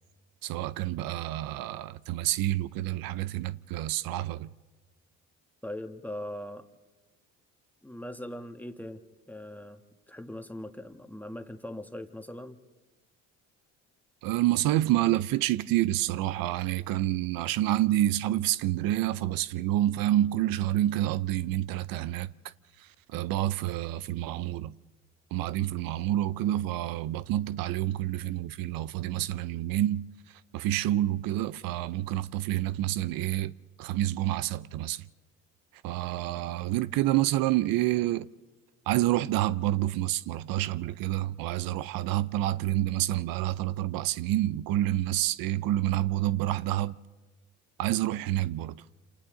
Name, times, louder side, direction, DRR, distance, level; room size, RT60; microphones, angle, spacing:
voice 1, 0.4-4.5 14.2-22.3 22.8-24.7 25.3-33.5 33.8-35.1 35.8-38.3 38.9-46.9 47.8-48.8, right 14 dB, 70° right, 0.6 m, -28 dB
voice 2, 5.6-6.7 7.8-9.8 10.1-12.6, left 1 dB, 5° left, 1.5 m, -40 dB
28.0 x 27.5 x 3.8 m
supercardioid pair, 75°, 35 cm